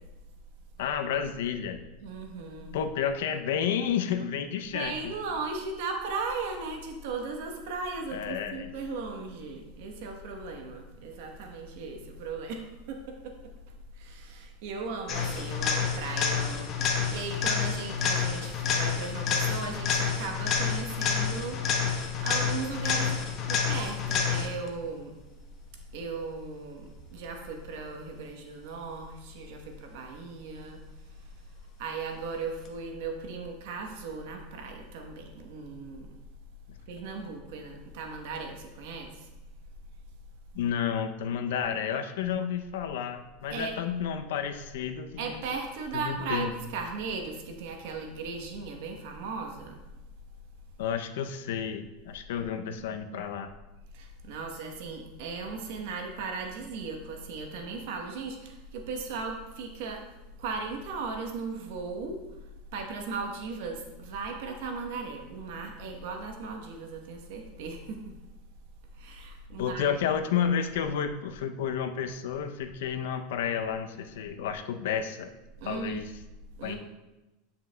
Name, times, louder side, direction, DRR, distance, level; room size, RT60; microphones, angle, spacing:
voice 1, 0.8-1.8 2.7-4.9 8.1-8.7 37.0-37.1 40.5-45.4 45.9-46.5 50.8-53.5 69.6-75.3 75.6-76.1 76.6-76.8, left 8 dB, 80° left, 8 dB, 0.5 m, -31 dB
voice 2, 2.0-2.8 4.7-13.4 14.0-21.9 22.2-25.1 25.9-30.8 31.8-36.1 36.9-39.3 43.5-43.8 45.2-49.8 53.9-60.0 60.4-62.2 62.7-68.0 68.9-70.0 75.6-76.0 76.6-76.8, right 4 dB, 65° right, 3 dB, 1.0 m, -37 dB
sound 1, 15.1-24.7 32.7-32.8, left 6 dB, 35° left, 0.9 m, -28 dB
9.6 x 5.7 x 2.2 m, 1.1 s
supercardioid pair, 145°, 0 cm